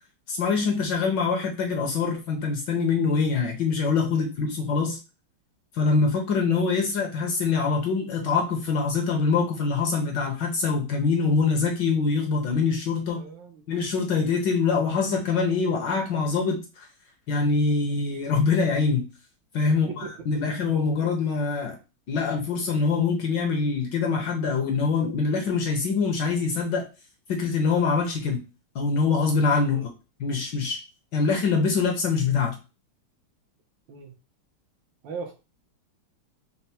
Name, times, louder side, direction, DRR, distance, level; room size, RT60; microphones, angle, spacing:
voice 1, 0.3-5.0 5.7-13.2 13.7-16.9 17.3-19.1 19.5-21.8 22.1-26.8 27.3-28.4 28.7-29.9 30.2-30.8 31.1-32.6, left 4 dB, 65° left, 3 dB, 1.2 m, -24 dB
voice 2, 13.1-13.6 19.7-20.4 29.7-29.9 33.9-34.1 35.0-35.3, right 5 dB, 70° right, 2 dB, 1.2 m, -39 dB
4.3 x 2.0 x 4.1 m, 0.31 s
omnidirectional pair, 2.4 m